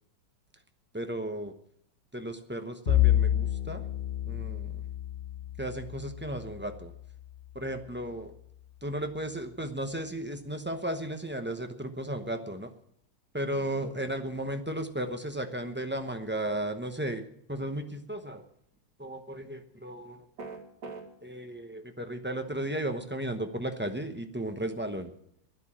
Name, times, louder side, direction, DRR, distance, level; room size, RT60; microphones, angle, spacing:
voice 1, 0.9-1.5 2.1-3.8 4.3-4.8 5.6-6.9 7.5-8.3 8.8-12.7 13.3-17.2 17.5-18.4 19.0-20.3 21.2-25.1, right 1 dB, 15° right, 6 dB, 0.4 m, -35 dB
Bowed string instrument, 2.9-7.4, left 12 dB, 35° left, 0.8 m, -29 dB
sound 1, 20.4-21.0, right 4 dB, 65° right, 2.6 m, -40 dB
12.5 x 11.0 x 7.4 m, 0.69 s
omnidirectional pair, 2.1 m